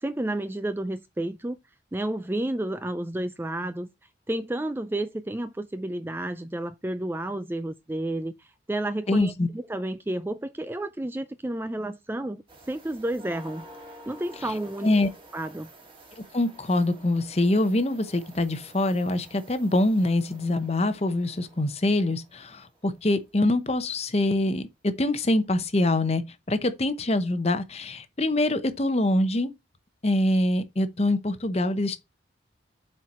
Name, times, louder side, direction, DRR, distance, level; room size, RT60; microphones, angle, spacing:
voice 1, 0.0-1.6 1.9-3.9 4.3-13.7 14.1-14.9 15.3-15.7, right 1 dB, 10° right, 0.3 m, -31 dB
voice 2, 9.1-9.5 14.8-15.1 16.3-26.2 26.5-29.5 30.0-32.0, left 1 dB, 35° left, 0.8 m, -24 dB
sound 1, 12.5-23.1 25.1-25.2 25.8-25.9, right 1 dB, 25° right, 2.2 m, -50 dB
7.9 x 4.5 x 4.2 m
head